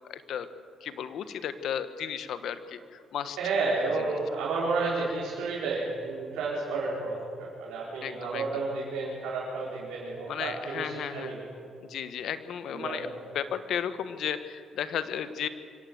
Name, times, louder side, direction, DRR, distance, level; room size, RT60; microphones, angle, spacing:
voice 1, 0.1-0.5 0.8-3.4 8.0-8.6 10.3-11.3 11.8-15.5, left 8 dB, 75° left, 11 dB, 1.2 m, -34 dB
voice 2, 3.4-11.5 12.7-13.0, right 3 dB, 85° right, -6 dB, 4.7 m, -31 dB
24.5 x 16.0 x 7.9 m, 2.3 s
cardioid pair, 90°, 0 cm